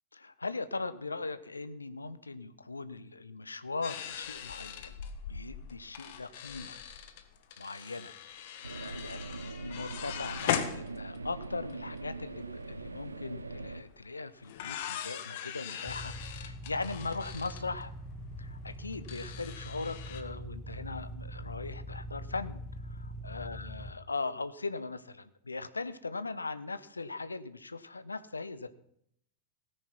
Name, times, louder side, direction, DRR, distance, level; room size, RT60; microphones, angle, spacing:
voice 1, 0.1-5.0 5.3-6.8 7.6-8.1 8.6-17.9 18.4-28.7, left 3 dB, 80° left, 14 dB, 0.9 m, -39 dB
sound 1, 3.8-11.4 11.7-11.8 12.0-12.4 13.8-13.9 14.4-20.2, left 9 dB, 50° left, 1.5 m, -40 dB
sound 2, 8.6-13.8, right 3 dB, 80° right, 0.9 m, -42 dB
sound 3, 15.9-23.9, equal, 5° right, 1.5 m, -43 dB
17.5 x 9.7 x 6.1 m, 0.71 s
figure-of-eight pair, 90°, 0 cm